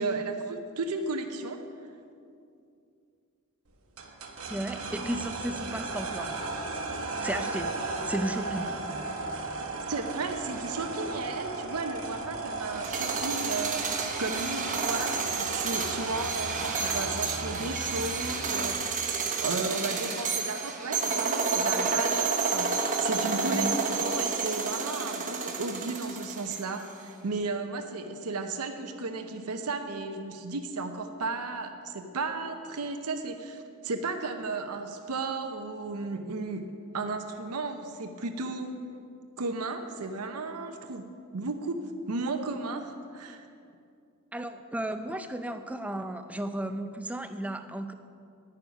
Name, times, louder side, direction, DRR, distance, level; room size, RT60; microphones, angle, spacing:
voice 1, 0.0-1.6 9.9-38.8 39.4-41.1 41.3-41.8 42.1-43.4, right 3 dB, 90° right, 6 dB, 0.8 m, -34 dB
sound 1, 4.0-18.8, right 3 dB, 70° right, 1.2 m, -35 dB
voice 2, 4.5-6.4 7.2-7.7 8.1-8.7 23.5-23.9 44.3-47.9, right 1 dB, 5° right, 8 dB, 0.4 m, -34 dB
sound 2, 12.7-26.9, right 5 dB, 35° right, 1.0 m, -30 dB
10.5 x 9.5 x 5.3 m, 2.4 s
head